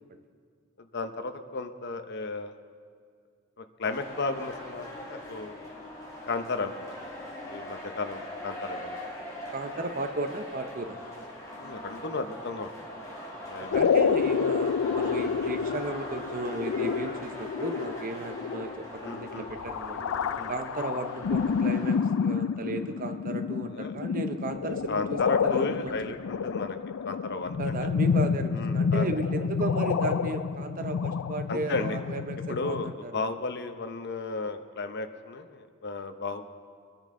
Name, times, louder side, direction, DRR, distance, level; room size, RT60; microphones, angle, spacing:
voice 1, 0.8-2.5 3.6-5.5 6.2-6.7 7.0-7.1 7.5-9.0 11.6-12.7 13.5-13.8 19.0-19.5 20.4-20.5 23.7-23.9 24.9-26.8 27.1-27.8 28.5-29.1 31.5-32.0 32.5-36.4, left 3 dB, 55° left, 7 dB, 0.8 m, -34 dB
sound 1, 3.8-22.0, left 1 dB, 15° left, 3.4 m, -41 dB
voice 2, 9.5-11.0 13.6-20.1 20.5-26.1 27.6-33.2, right 2 dB, 45° right, 8 dB, 0.7 m, -35 dB
sound 2, 13.7-32.9, left 6 dB, 90° left, 0.4 m, -29 dB
23.5 x 10.5 x 3.7 m, 2.1 s
head